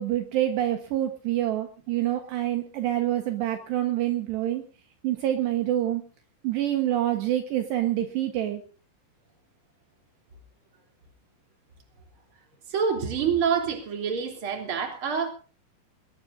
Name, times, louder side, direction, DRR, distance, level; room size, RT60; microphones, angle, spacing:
voice 1, 0.0-4.6 5.0-6.0 6.4-8.6, right 12 dB, 70° right, 5 dB, 3.2 m, -26 dB
voice 2, 12.7-15.3, right 6 dB, 30° right, 4 dB, 3.6 m, -26 dB
22.0 x 20.0 x 2.7 m, 0.36 s
omnidirectional pair, 5.5 m